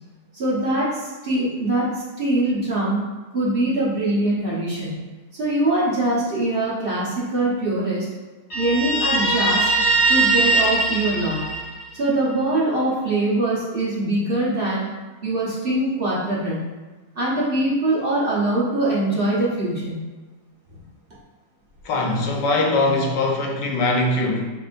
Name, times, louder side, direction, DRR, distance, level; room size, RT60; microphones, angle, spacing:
voice 1, 0.3-3.0 3.3-5.0 5.3-8.1 8.5-9.7 10.1-11.5 11.9-14.8 15.2-16.6 17.1-20.0, right 1 dB, 35° right, -7 dB, 1.1 m, -23 dB
Guitar, 8.5-12.1, right 3 dB, 40° left, 1.3 m, -21 dB
voice 2, 21.8-24.4, left 2 dB, 75° left, 1 dB, 1.4 m, -21 dB
5.6 x 3.4 x 2.5 m, 1.2 s
omnidirectional pair, 1.9 m